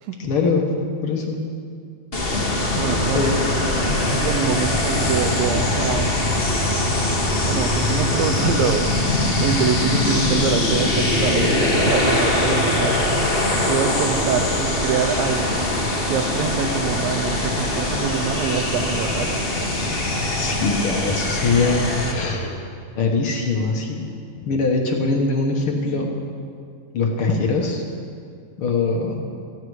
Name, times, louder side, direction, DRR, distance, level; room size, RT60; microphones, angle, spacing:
voice 1, 0.2-1.4 3.1-3.4 20.0-22.6 22.9-24.1 24.4-26.1 26.9-27.8 28.6-29.3, left 3 dB, 55° left, 1 dB, 1.7 m, -22 dB
sound 1, 2.1-22.1, left 2 dB, 30° left, 1.1 m, -22 dB
voice 2, 2.7-3.6 4.0-6.2 7.4-13.2 13.7-15.7 16.1-19.7, right 7 dB, 85° right, 8 dB, 2.7 m, -25 dB
17.5 x 15.0 x 4.8 m, 2.3 s
omnidirectional pair, 4.0 m